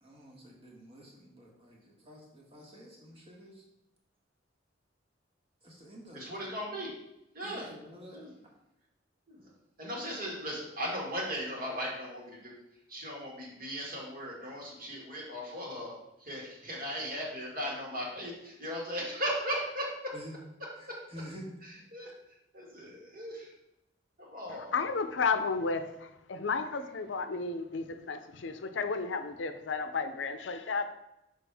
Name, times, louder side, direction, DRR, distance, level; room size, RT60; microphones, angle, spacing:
voice 1, 0.0-3.6 5.6-6.3 7.4-8.3 20.1-20.3 20.8-21.5, equal, 30° right, -2 dB, 1.4 m, -49 dB
voice 2, 6.1-6.9 7.3-7.6 8.1-8.3 9.3-9.5 9.8-12.5 12.9-15.9 16.2-19.9 20.9-21.0 21.9-22.1 22.5-23.5 24.2-24.7, equal, 50° right, -3 dB, 1.9 m, -37 dB
voice 3, 24.5-30.8, left 4 dB, 75° left, 8 dB, 0.5 m, -33 dB
6.1 x 5.1 x 3.4 m, 0.87 s
head